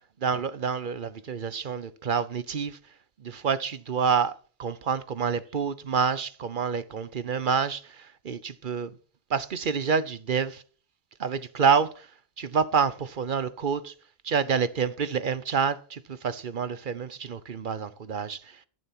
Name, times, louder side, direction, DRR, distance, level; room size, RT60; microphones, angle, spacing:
voice 1, 0.2-2.8 3.2-8.9 9.3-10.6 11.2-12.1 12.4-13.9 14.2-18.6, right 6 dB, 55° right, 0.9 m, -28 dB
12.5 x 10.5 x 4.4 m
omnidirectional pair, 1.1 m